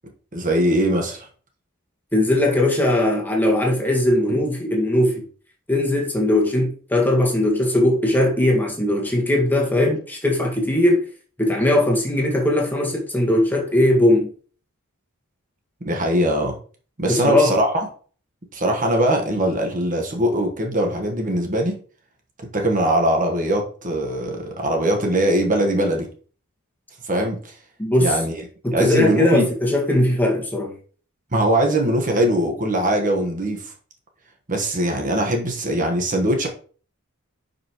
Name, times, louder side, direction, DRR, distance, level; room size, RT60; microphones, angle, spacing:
voice 1, 0.3-1.3 15.8-16.6 17.0-17.9 18.5-21.8 22.5-26.1 27.0-27.5 28.0-28.3 28.7-29.5 31.3-33.7 34.5-36.5, right 1 dB, 35° right, 1.3 m, -21 dB
voice 2, 2.1-5.2 5.7-11.1 11.4-14.3 17.1-17.5 27.8-28.2 28.6-30.7, left 1 dB, 10° left, 1.8 m, -19 dB
10.5 x 5.4 x 3.1 m
head